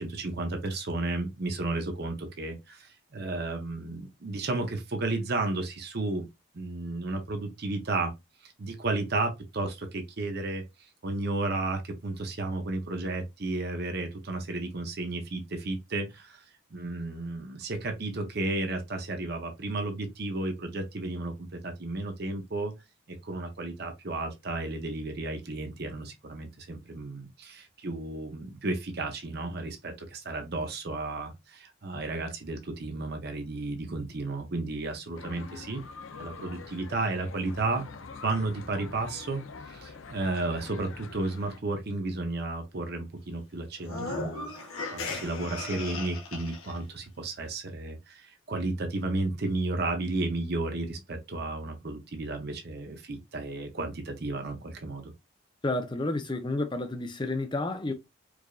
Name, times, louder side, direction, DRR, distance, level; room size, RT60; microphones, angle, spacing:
voice 1, 0.0-6.3 6.5-8.1 8.4-10.6 11.0-16.4 16.7-22.7 23.1-35.8 36.2-37.9 38.2-39.4 39.7-44.5 44.9-55.1, right 2 dB, 50° right, 0.7 m, -33 dB
sound 1, 35.2-41.6, left 4 dB, 75° left, 0.6 m, -45 dB
sound 2, 43.8-46.8, left 3 dB, 90° left, 1.2 m, -36 dB
voice 2, 55.6-57.9, left 2 dB, 20° left, 0.5 m, -30 dB
4.7 x 2.5 x 2.3 m
head